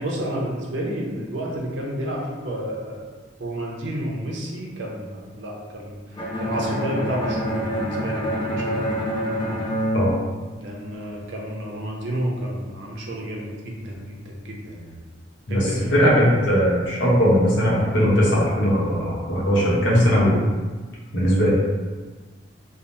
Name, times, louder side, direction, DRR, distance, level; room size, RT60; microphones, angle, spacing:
voice 1, 0.0-3.1 3.4-9.0 10.6-15.0 15.5-15.9 16.2-16.3, right 1 dB, 75° right, -2 dB, 0.6 m, -31 dB
Bowed string instrument, 6.2-11.1, equal, 25° left, 0.4 m, -27 dB
voice 2, 15.5-20.4 21.1-21.5, equal, 85° left, -6 dB, 0.9 m, -19 dB
3.3 x 2.0 x 2.6 m, 1.3 s
head